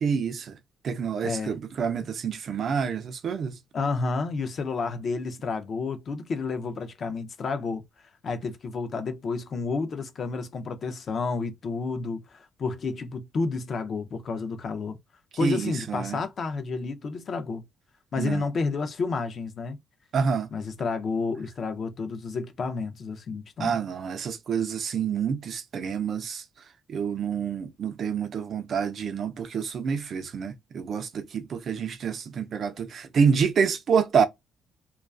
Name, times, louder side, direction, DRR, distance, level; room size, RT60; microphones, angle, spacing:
voice 1, 0.0-0.6 0.8-3.6 15.4-16.2 18.2-18.4 20.1-20.5 23.6-26.4 26.9-34.2, right 6 dB, 45° right, 0.3 m, -27 dB
voice 2, 1.2-1.6 3.7-7.8 8.2-15.0 15.4-17.6 18.1-19.8 20.5-23.8, left 4 dB, 40° left, 0.4 m, -30 dB
2.3 x 2.3 x 2.3 m
cardioid pair, 170°, 0 cm